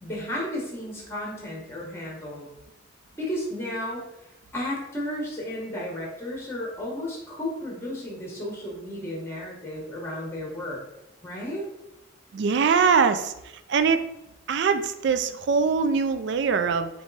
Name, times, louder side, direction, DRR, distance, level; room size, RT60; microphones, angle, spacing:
voice 1, 0.0-2.5 3.2-4.0 4.5-10.8 11.2-11.7, left 1 dB, 10° left, -3 dB, 1.0 m, -33 dB
voice 2, 12.3-13.3 13.7-14.0 14.5-16.9, right 5 dB, 60° right, 10 dB, 0.3 m, -22 dB
3.6 x 3.0 x 3.9 m, 0.87 s
head